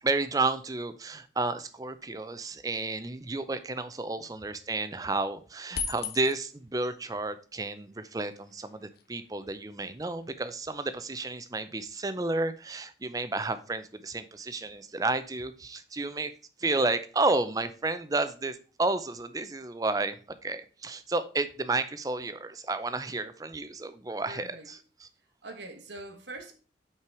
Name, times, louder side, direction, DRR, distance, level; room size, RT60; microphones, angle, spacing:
voice 1, 0.0-16.3 16.6-20.2 20.4-25.1, right 3 dB, 20° right, 0.5 m, -31 dB
sound 1, 5.7-6.6 7.9-8.0 8.2-11.6, left 6 dB, 60° left, 0.7 m, -40 dB
voice 2, 24.3-24.7 25.4-26.5, right 2 dB, 85° right, 1.3 m, -44 dB
5.8 x 4.7 x 4.7 m
head